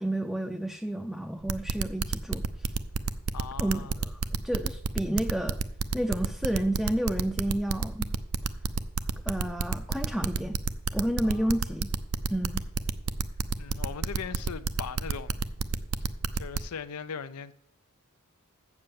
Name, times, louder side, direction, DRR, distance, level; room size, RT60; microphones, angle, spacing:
voice 1, 0.0-2.7 3.6-5.6 5.9-8.1 9.3-10.6 10.9-11.9 12.3-12.7, right 1 dB, ahead, 0.4 m, -30 dB
sound 1, 1.5-16.6, right 5 dB, 70° right, 0.5 m, -29 dB
voice 2, 3.3-4.0 11.2-11.6 13.6-15.6 16.3-17.5, left 6 dB, 90° left, 0.5 m, -39 dB
7.6 x 7.2 x 6.9 m
head